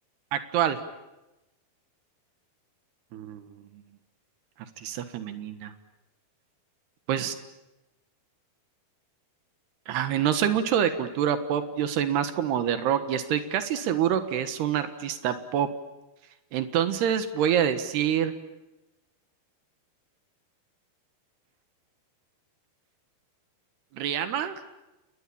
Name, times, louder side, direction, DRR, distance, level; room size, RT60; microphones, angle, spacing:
voice 1, 0.3-0.8 3.1-3.4 4.8-5.7 7.1-7.4 9.9-15.7 16.5-18.3 23.9-24.6, right 9 dB, 80° right, 10 dB, 3.5 m, -26 dB
29.5 x 20.0 x 8.7 m, 1.0 s
omnidirectional pair, 4.6 m